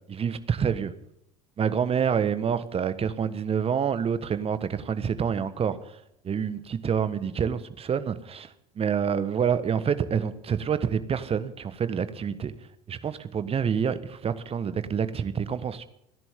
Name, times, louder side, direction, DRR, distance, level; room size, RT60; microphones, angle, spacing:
voice 1, 0.1-0.9 1.6-6.0 6.2-12.5 12.9-15.8, right 7 dB, 30° right, 1.4 m, -27 dB
28.5 x 11.0 x 3.8 m
figure-of-eight pair, 70°, 20 cm